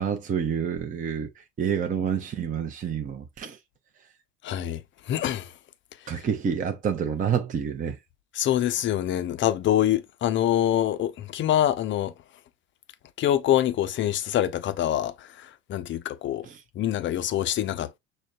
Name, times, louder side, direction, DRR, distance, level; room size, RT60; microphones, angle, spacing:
voice 1, 0.0-3.6 6.1-8.0 16.4-16.6, right 7 dB, 25° right, 0.6 m, -28 dB
voice 2, 4.4-4.8 5.1-5.5 8.3-12.1 13.2-16.5 16.8-18.0, left 11 dB, 35° left, 0.5 m, -25 dB
6.3 x 2.1 x 2.4 m
hypercardioid pair, 70°, 33 cm